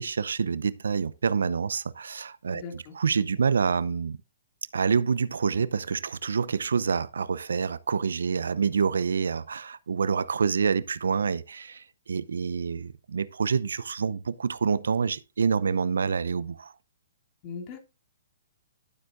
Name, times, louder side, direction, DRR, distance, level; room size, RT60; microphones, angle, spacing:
voice 1, 0.0-4.2 4.7-16.7, right 6 dB, 80° right, 0.6 m, -27 dB
voice 2, 2.5-3.0 17.4-17.8, left 5 dB, 35° left, 2.5 m, -39 dB
12.0 x 7.8 x 2.5 m
hypercardioid pair, 130°, 0 cm